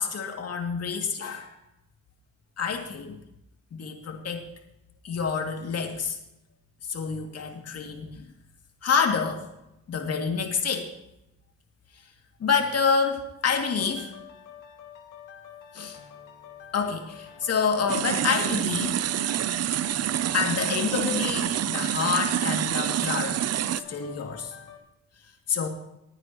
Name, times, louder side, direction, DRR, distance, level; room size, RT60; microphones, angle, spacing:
voice 1, 0.0-1.6 2.6-3.2 3.7-4.5 5.0-6.2 6.9-8.3 8.8-9.4 9.9-10.9 12.4-14.1 15.7-16.0 16.7-19.0 20.3-23.4 23.9-24.5 25.5-25.7, left 6 dB, 55° left, 3 dB, 2.5 m, -27 dB
sound 1, 13.4-24.8, left 8 dB, 90° left, 2.2 m, -47 dB
sound 2, 17.9-23.8, right 11 dB, 55° right, 0.6 m, -27 dB
20.0 x 9.6 x 3.0 m, 0.85 s
cardioid pair, 90°, 30 cm